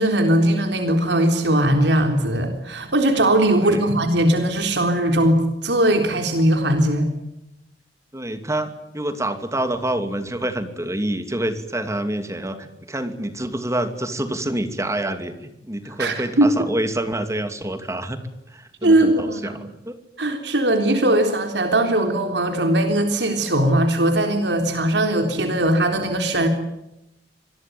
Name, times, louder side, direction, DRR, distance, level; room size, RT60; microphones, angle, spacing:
voice 1, 0.0-7.1 16.0-16.5 18.8-19.6 20.2-26.5, right 1 dB, 85° right, 5 dB, 3.7 m, -19 dB
voice 2, 3.5-3.9 8.1-18.2 18.5-20.0, right 1 dB, 20° right, 9 dB, 2.7 m, -27 dB
26.5 x 21.0 x 9.2 m, 0.87 s
head